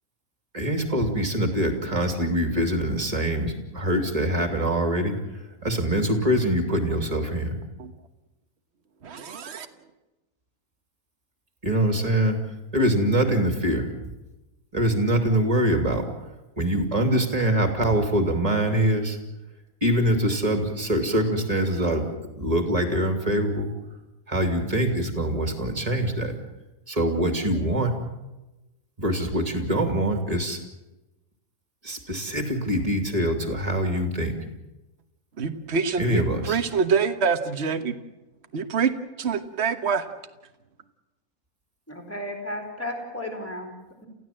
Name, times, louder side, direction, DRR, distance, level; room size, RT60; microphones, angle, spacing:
voice 1, 0.5-7.6 11.6-12.4 12.7-13.9 14.7-16.0 16.6-19.2 19.8-22.1 22.3-23.7 24.3-26.3 26.9-27.9 29.0-30.6 31.8-34.3 36.0-36.6, right 1 dB, 25° right, 5 dB, 3.0 m, -24 dB
voice 2, 9.0-9.7 35.4-38.0 38.5-38.9 39.2-40.1, right 5 dB, 50° right, 9 dB, 1.5 m, -25 dB
voice 3, 41.9-43.7, left 1 dB, 10° left, 2 dB, 4.4 m, -33 dB
28.5 x 15.5 x 7.6 m, 1.0 s
omnidirectional pair, 1.6 m